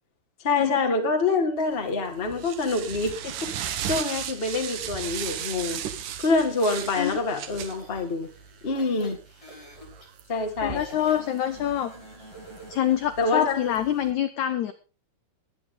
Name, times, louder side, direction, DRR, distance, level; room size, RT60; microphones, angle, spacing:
voice 1, 0.4-3.5 3.9-5.8 6.2-8.3 8.6-9.2 10.3-10.8 13.2-13.6, left 3 dB, 30° left, 3 dB, 1.0 m, -26 dB
sound 1, 1.7-14.1, right 9 dB, 65° right, 2.3 m, -37 dB
sound 2, 6.8-7.2 7.7-10.1 10.8-13.0, right 1 dB, 10° left, 4.7 m, -47 dB
voice 2, 10.6-11.9 12.2-12.3 12.7-14.7, left 10 dB, 80° left, 10 dB, 1.7 m, -26 dB
21.0 x 8.7 x 3.9 m, 0.33 s
omnidirectional pair, 4.5 m